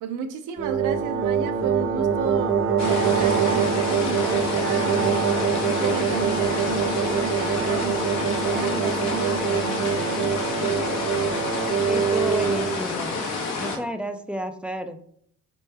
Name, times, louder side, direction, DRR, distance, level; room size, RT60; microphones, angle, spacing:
voice 1, 0.0-5.1 5.5-10.4, right 7 dB, 90° right, 7 dB, 0.6 m, -33 dB
sound 1, 0.6-12.8, right 6 dB, 45° right, 0.6 m, -24 dB
sound 2, 2.8-13.8, left 3 dB, 65° left, 1.0 m, -29 dB
voice 2, 11.8-13.2 13.6-15.0, equal, 5° right, 8 dB, 0.3 m, -31 dB
4.3 x 3.0 x 3.3 m, 0.65 s
cardioid pair, 90°, 30 cm